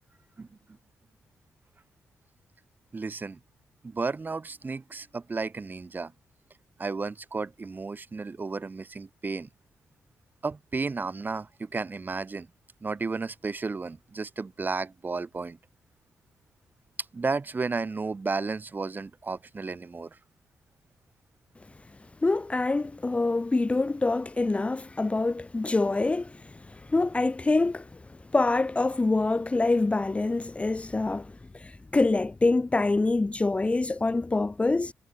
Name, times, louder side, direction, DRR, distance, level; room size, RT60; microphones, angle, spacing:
voice 1, 2.9-3.4 3.8-6.1 6.8-9.5 10.4-12.5 12.8-15.6 17.1-20.1, right 4 dB, 35° right, 6.3 m, -33 dB
voice 2, 22.2-27.9 28.3-34.9, left 3 dB, 25° left, 0.9 m, -25 dB
supercardioid pair, 60°, 5 cm